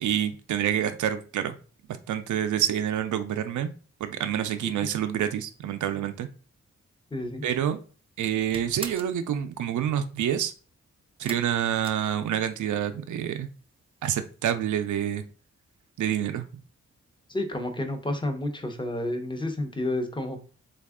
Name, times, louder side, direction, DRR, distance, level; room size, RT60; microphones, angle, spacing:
voice 1, 0.0-1.6 2.1-3.7 4.0-6.3 7.4-7.8 8.2-10.5 11.2-13.5 14.0-15.2 16.0-16.5, right 10 dB, 85° right, 9 dB, 0.4 m, -27 dB
voice 2, 7.1-7.4 17.3-20.4, left 1 dB, 15° left, 6 dB, 0.8 m, -30 dB
sound 1, 7.5-7.9 8.2-9.2 11.2-12.7 13.0-13.6 13.9-14.0 14.4-14.5, right 3 dB, 20° right, 0.5 m, -42 dB
3.4 x 2.3 x 3.6 m, 0.39 s
cardioid pair, 70°, 29 cm